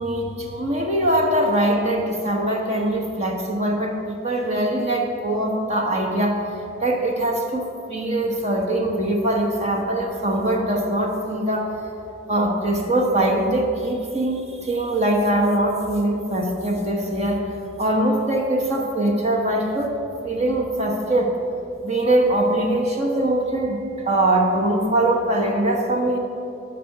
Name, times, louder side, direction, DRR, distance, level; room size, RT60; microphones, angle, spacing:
voice 1, 0.0-6.4 6.8-11.7 12.3-20.0 20.2-21.4 21.8-26.2, right 1 dB, 35° right, 0 dB, 1.1 m, -22 dB
14.0 x 5.7 x 6.6 m, 2.9 s
head